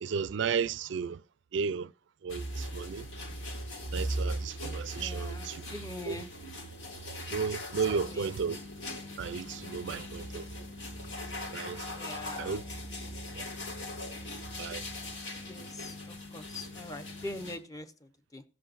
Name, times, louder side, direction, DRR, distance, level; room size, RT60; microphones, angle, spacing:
voice 1, 0.0-1.2 1.5-1.9 2.2-3.1 3.9-5.6 6.1-6.2 7.3-8.6 9.2-10.4 11.3-11.8 12.4-12.6 13.4-13.5 14.6-14.8, right 6 dB, 75° right, 0.4 m, -33 dB
sound 1, 2.3-17.6, equal, 85° left, 2.6 m, -39 dB
voice 2, 4.9-6.3 7.8-8.3 11.9-12.6 15.4-18.4, left 1 dB, 20° left, 0.9 m, -43 dB
16.5 x 7.5 x 2.5 m
head